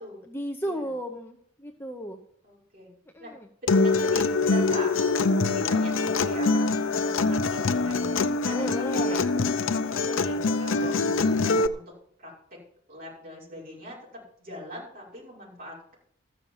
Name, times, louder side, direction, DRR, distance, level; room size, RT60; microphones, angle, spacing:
voice 1, 0.2-2.2 3.1-3.5 8.5-9.3, equal, 10° left, 4 dB, 0.8 m, -34 dB
voice 2, 2.4-2.9 3.2-3.3 3.6-8.1 8.4-11.9 12.2-12.6 12.9-15.9, left 1 dB, 45° right, -4 dB, 5.6 m, -41 dB
Acoustic guitar, 3.7-11.7, left 3 dB, 75° left, 0.6 m, -24 dB
13.5 x 7.0 x 7.3 m, 0.65 s
head